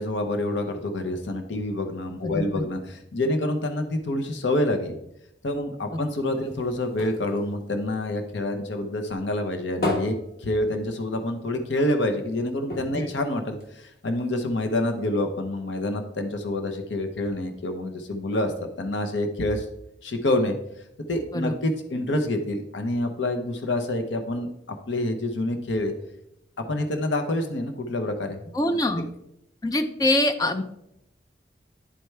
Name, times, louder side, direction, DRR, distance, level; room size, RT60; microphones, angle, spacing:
voice 1, 0.0-5.0 5.4-19.7 20.0-20.5 21.1-25.9 26.6-28.5, left 1 dB, 85° left, 6 dB, 0.7 m, -27 dB
voice 2, 2.2-2.6 13.0-13.1 21.3-21.5 28.5-29.1 29.6-30.6, left 1 dB, 20° left, 7 dB, 0.5 m, -24 dB
sound 1, 6.1-8.7 9.1-11.3 11.7-11.8 12.1-12.2 12.7-14.2 14.8-14.9, left 1 dB, 55° left, 1.1 m, -34 dB
10.0 x 4.5 x 3.2 m, 0.81 s
head